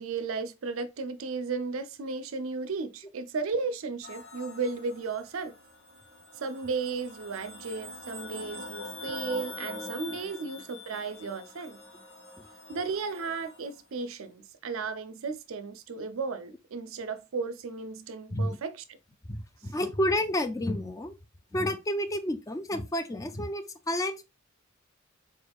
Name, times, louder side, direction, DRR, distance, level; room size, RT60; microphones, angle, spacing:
voice 1, 0.0-5.5 6.4-11.8 12.7-19.0 19.6-19.7, right 4 dB, 70° right, 0.5 m, -34 dB
sound 1, 4.0-13.7, left 2 dB, 75° left, 2.1 m, -44 dB
voice 2, 19.3-21.1 21.5-24.2, left 1 dB, 15° left, 0.4 m, -30 dB
4.2 x 3.5 x 2.3 m
head